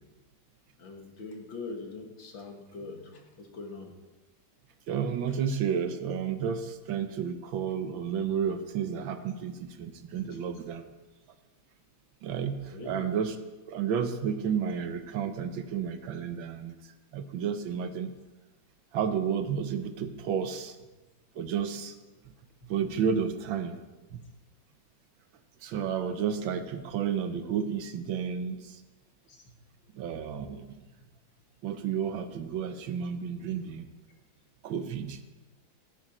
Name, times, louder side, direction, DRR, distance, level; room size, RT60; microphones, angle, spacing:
voice 1, 0.8-3.9 12.7-13.1 22.6-22.7 29.3-29.4, left 3 dB, 75° left, 2 dB, 2.5 m, -42 dB
voice 2, 4.9-10.8 12.2-13.4 13.7-16.7 17.1-18.1 18.9-20.7 21.4-21.9 22.7-23.8 25.6-28.6 30.0-30.7 31.6-33.9 34.6-35.2, right 7 dB, 75° right, 9 dB, 1.6 m, -31 dB
16.0 x 10.0 x 4.3 m, 1.2 s
omnidirectional pair, 2.2 m